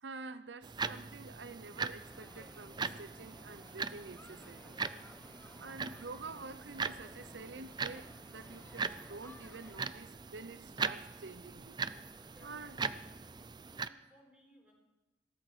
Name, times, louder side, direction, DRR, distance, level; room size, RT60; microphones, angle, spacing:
voice 1, 0.0-4.7 5.6-11.8 12.4-12.8, right 3 dB, 90° right, 0.8 m, -48 dB
sound 1, 0.6-13.9, right 5 dB, 25° right, 0.5 m, -41 dB
sound 2, 2.0-9.9, left 1 dB, 10° left, 0.9 m, -57 dB
voice 2, 12.2-13.2 13.6-14.7, equal, 10° right, 4.3 m, -63 dB
18.0 x 13.0 x 4.9 m
head